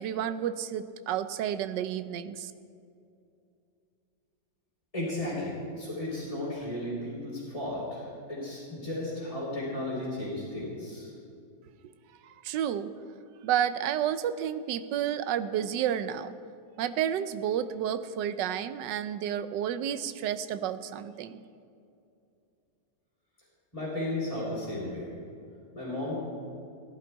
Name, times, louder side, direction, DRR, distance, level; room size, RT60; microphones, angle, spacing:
voice 1, 0.0-2.5 12.2-12.9 13.4-16.3 16.8-21.4, right 9 dB, 80° right, 12 dB, 1.3 m, -31 dB
voice 2, 4.9-11.1 23.7-25.1 25.7-26.1, left 1 dB, 20° left, -10 dB, 3.7 m, -34 dB
17.5 x 11.0 x 4.6 m, 2.5 s
omnidirectional pair, 1.9 m